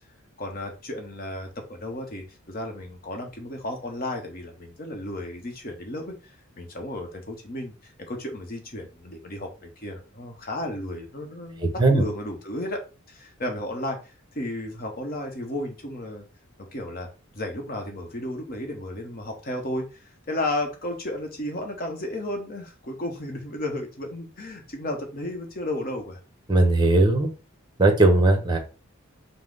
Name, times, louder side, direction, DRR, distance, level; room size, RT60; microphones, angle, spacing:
voice 1, 0.4-6.1 6.6-12.8 13.1-14.0 14.3-16.2 16.7-17.1 17.3-26.2, left 1 dB, 40° left, 3 dB, 0.8 m, -33 dB
voice 2, 26.5-27.3 27.8-28.6, right 2 dB, 20° right, 5 dB, 0.8 m, -18 dB
5.4 x 2.0 x 3.8 m, 0.33 s
head